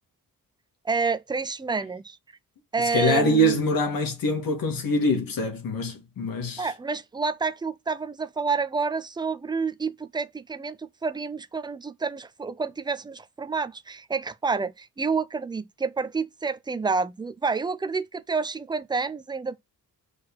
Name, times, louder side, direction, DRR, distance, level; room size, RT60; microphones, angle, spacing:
voice 1, 0.8-2.2 2.7-3.6 6.6-19.6, right 4 dB, 15° right, 0.4 m, -29 dB
voice 2, 2.9-6.7, equal, 75° left, 2.2 m, -24 dB
4.8 x 4.2 x 5.9 m
wide cardioid pair, 160°, 34 cm